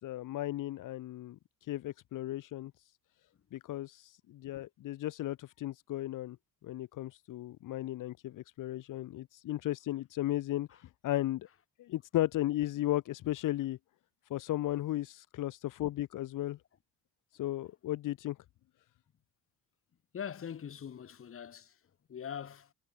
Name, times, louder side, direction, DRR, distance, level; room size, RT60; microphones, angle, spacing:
voice 1, 0.0-1.4 1.7-2.7 3.5-6.4 6.6-10.7 11.0-11.5 11.8-13.8 14.3-16.6 17.4-18.4, left 14 dB, 70° left, 3.9 m, -35 dB
voice 2, 20.1-21.7 22.1-22.7, left 8 dB, 40° left, 6.2 m, -42 dB
cardioid pair, 135°, 32 cm